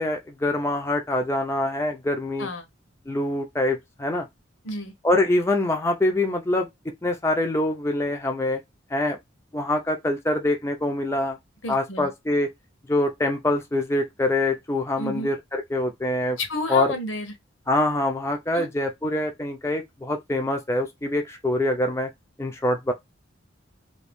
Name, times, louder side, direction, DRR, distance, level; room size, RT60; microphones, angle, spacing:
voice 1, 0.0-2.5 3.1-4.3 5.0-6.7 7.0-8.6 8.9-9.2 9.5-11.4 11.7-12.5 12.9-16.4 16.7-16.9 17.7-22.1 22.4-22.9, left 1 dB, 15° left, 0.5 m, -24 dB
voice 2, 11.6-12.1 15.0-15.3 16.4-17.3 18.5-18.7, left 2 dB, 85° left, 0.9 m, -30 dB
2.8 x 2.6 x 3.4 m
head